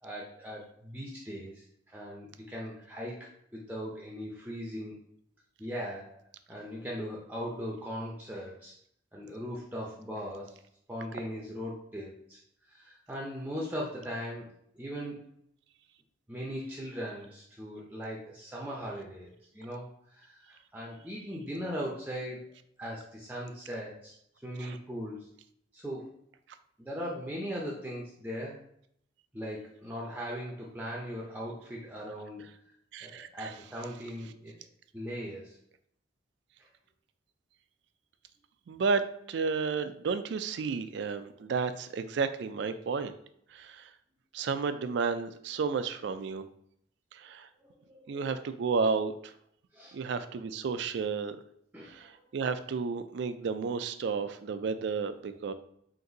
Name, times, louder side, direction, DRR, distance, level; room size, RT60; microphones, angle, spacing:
voice 1, 0.0-5.0 5.6-6.2 6.5-8.8 9.1-10.6 10.9-12.4 12.7-15.2 16.3-22.5 22.8-24.1 24.4-25.3 25.7-26.1 26.8-28.6 29.3-32.4 33.0-34.6 34.9-35.6 47.6-48.2 49.7-50.0 51.7-52.2, equal, 10° right, -3 dB, 0.5 m, -39 dB
voice 2, 32.9-33.5 38.7-39.0 39.3-43.1 43.5-43.9 44.3-46.4 47.1-47.5 48.1-49.3 49.9-51.4 51.9-55.5, right 5 dB, 60° right, 10 dB, 0.3 m, -32 dB
3.9 x 2.5 x 3.8 m, 0.70 s
head